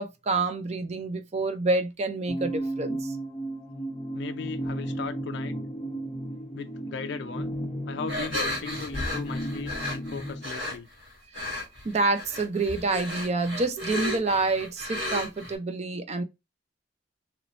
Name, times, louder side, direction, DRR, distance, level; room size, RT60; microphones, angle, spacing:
voice 1, 0.0-3.1 11.4-16.2, right 3 dB, 35° right, 0.5 m, -28 dB
sound 1, 2.3-10.4, right 1 dB, 10° left, 0.6 m, -34 dB
voice 2, 4.1-5.6 6.5-7.6 7.9-10.9, left 5 dB, 65° left, 0.3 m, -37 dB
sound 2, 8.1-10.7 11.3-11.8 12.1-15.5, left 1 dB, 70° right, 1.9 m, -33 dB
3.0 x 2.7 x 3.0 m
head